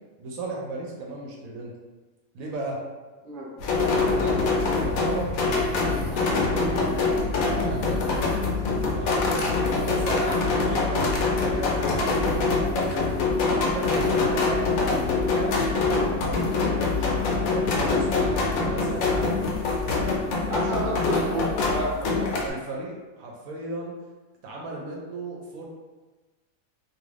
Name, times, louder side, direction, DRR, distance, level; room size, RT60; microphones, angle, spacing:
voice 1, 0.2-1.7 2.3-2.8 4.0-4.5 4.8-5.3 6.1-7.0 7.5-8.5 8.9-9.5 9.8-13.0 13.4-17.1 17.4-19.6 20.0-20.8 22.2-23.9 24.4-25.7, right 2 dB, 80° right, -2 dB, 1.0 m, -35 dB
sound 1, 3.6-22.5, left 3 dB, 75° left, 1.0 m, -24 dB
voice 2, 20.5-22.2, right 1 dB, 45° right, -4 dB, 0.7 m, -30 dB
2.5 x 2.5 x 3.2 m, 1.3 s
omnidirectional pair, 1.5 m